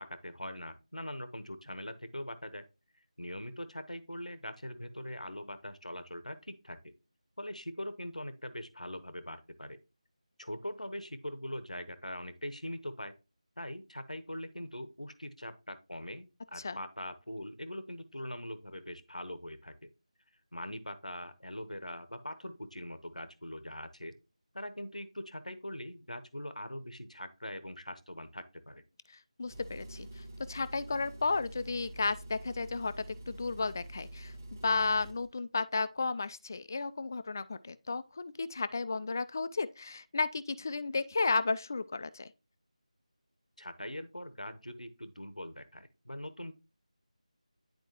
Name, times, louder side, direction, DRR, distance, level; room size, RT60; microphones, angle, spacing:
voice 1, 0.0-2.6 3.2-6.9 7.4-9.8 10.4-13.1 13.6-19.9 20.5-24.1 24.5-28.8 43.6-46.5, left 1 dB, 80° left, 1.0 m, -42 dB
voice 2, 29.1-42.3, left 4 dB, 30° left, 0.4 m, -33 dB
Engine, 29.4-35.3, right 1 dB, 20° right, 1.2 m, -47 dB
10.5 x 4.4 x 2.9 m
figure-of-eight pair, 165°, 4 cm